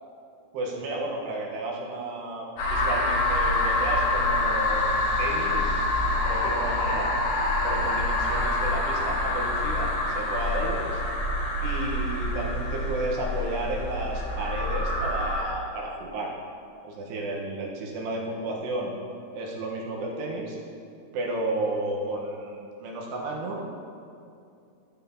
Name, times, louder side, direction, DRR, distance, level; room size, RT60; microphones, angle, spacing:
voice 1, 0.5-4.9 5.2-5.9 6.3-7.1 7.6-11.0 11.6-16.3 16.8-18.9 19.3-20.6 21.1-23.7, right 2 dB, 75° right, -2 dB, 3.1 m, -32 dB
sound 1, 2.6-15.4, left 2 dB, 70° left, 4.1 m, -26 dB
12.0 x 11.5 x 2.9 m, 2.5 s
omnidirectional pair, 5.3 m